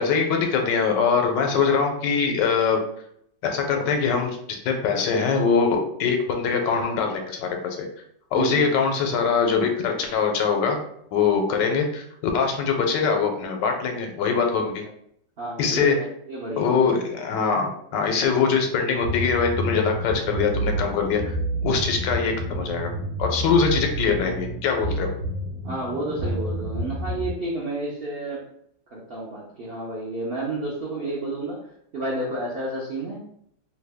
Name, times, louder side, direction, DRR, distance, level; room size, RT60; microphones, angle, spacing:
voice 1, 0.0-2.8 3.4-4.4 4.6-7.9 8.3-10.8 11.1-14.8 15.6-16.0 16.6-21.4 21.6-22.9 23.2-25.1, left 5 dB, 90° left, 3 dB, 1.3 m, -23 dB
voice 2, 8.3-8.7 15.4-16.8 24.2-24.3 25.6-28.4 28.9-31.6 31.9-33.2, right 2 dB, 80° right, -4 dB, 0.5 m, -31 dB
sound 1, 19.0-27.3, right 1 dB, 55° right, 1.0 m, -29 dB
2.9 x 2.2 x 3.4 m, 0.69 s
omnidirectional pair, 1.9 m